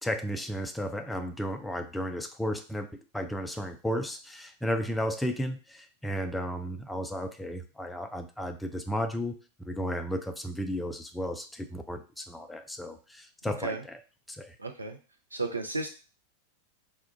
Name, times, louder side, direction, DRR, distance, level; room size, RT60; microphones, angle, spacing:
voice 1, 0.0-9.4 9.7-14.0 14.3-14.6, equal, 5° left, 6 dB, 0.3 m, -34 dB
voice 2, 13.5-13.8 14.6-15.0 15.3-15.9, right 3 dB, 80° right, 4 dB, 0.4 m, -33 dB
2.3 x 2.1 x 3.7 m, 0.34 s
figure-of-eight pair, 90°, 0 cm